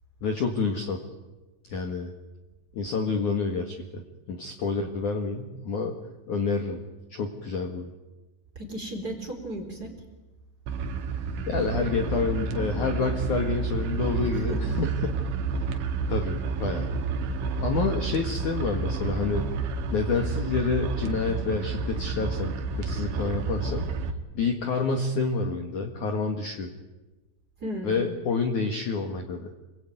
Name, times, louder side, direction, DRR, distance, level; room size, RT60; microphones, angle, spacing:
voice 1, 0.2-1.1 1.6-2.1 2.7-6.0 6.3-6.8 7.1-7.9 11.5-15.1 16.1-16.9 17.6-19.5 19.9-23.9 24.3-26.7 27.8-29.5, left 4 dB, 55° left, 5 dB, 2.4 m, -28 dB
voice 2, 8.6-9.9 14.5-14.9 27.6-28.0, right 1 dB, 20° right, 2 dB, 3.8 m, -35 dB
sound 1, 10.7-24.1, right 4 dB, 70° right, 3.9 m, -30 dB
28.0 x 22.5 x 9.4 m, 1.1 s
omnidirectional pair, 5.8 m